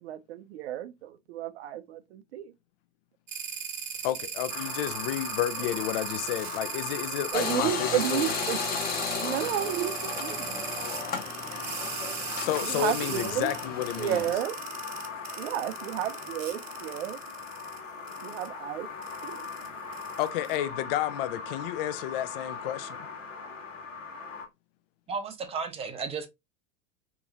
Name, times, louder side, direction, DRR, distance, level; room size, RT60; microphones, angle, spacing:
voice 1, 0.0-2.5 7.3-8.6 9.2-10.6 12.6-13.5 14.0-14.5 15.4-17.2 18.2-18.9 19.2-19.5, right 11 dB, 55° right, 0.6 m, -32 dB
sound 1, 3.3-17.8 18.1-18.5 19.0-20.5, right 7 dB, 75° right, 1.0 m, -38 dB
voice 2, 4.0-8.3 12.4-14.3 20.2-23.0, left 13 dB, 50° left, 0.5 m, -31 dB
sound 2, 4.5-24.4, left 4 dB, 80° left, 1.3 m, -40 dB
sound 3, 7.3-14.3, left 5 dB, 25° left, 0.9 m, -35 dB
voice 3, 25.1-26.3, right 5 dB, 15° right, 0.7 m, -33 dB
3.8 x 2.9 x 2.5 m
figure-of-eight pair, 85°, 39 cm